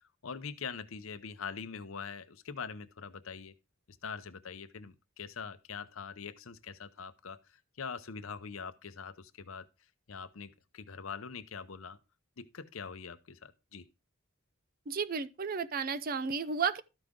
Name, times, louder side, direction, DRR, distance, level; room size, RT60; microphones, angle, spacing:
voice 1, 0.2-3.5 3.9-9.7 10.1-12.0 12.4-13.9, left 5 dB, 85° left, 0.8 m, -43 dB
voice 2, 14.9-16.8, right 5 dB, 45° right, 0.6 m, -33 dB
13.0 x 4.9 x 3.7 m
head